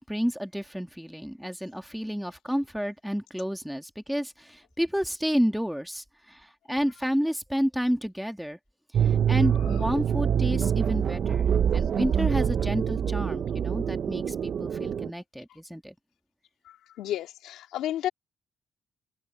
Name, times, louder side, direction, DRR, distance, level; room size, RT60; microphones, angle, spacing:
voice 1, 0.0-8.6 8.9-16.0, equal, ahead, 2.2 m, -30 dB
sound 1, 8.9-15.1, right 8 dB, 55° right, 0.8 m, -25 dB
voice 2, 16.6-18.1, left 12 dB, 85° left, 2.8 m, -32 dB
cardioid pair, 90°, 0 cm